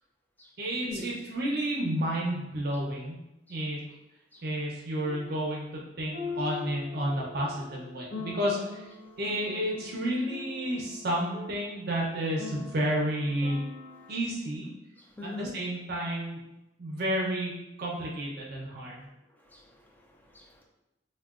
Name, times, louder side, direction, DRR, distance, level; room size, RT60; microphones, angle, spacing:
voice 1, 0.6-3.2 3.5-3.8 4.4-8.9 9.2-13.6 14.1-14.7 15.2-16.4 16.8-17.5 17.8-19.1, right 1 dB, 60° right, -2 dB, 0.5 m, -31 dB
sound 1, 3.9-4.0 5.0-5.3 6.1-14.2, left 4 dB, 70° left, 0.6 m, -43 dB
voice 2, 15.0-15.5 19.3-20.6, left 1 dB, 10° left, -1 dB, 0.4 m, -43 dB
3.7 x 2.1 x 2.3 m, 0.92 s
head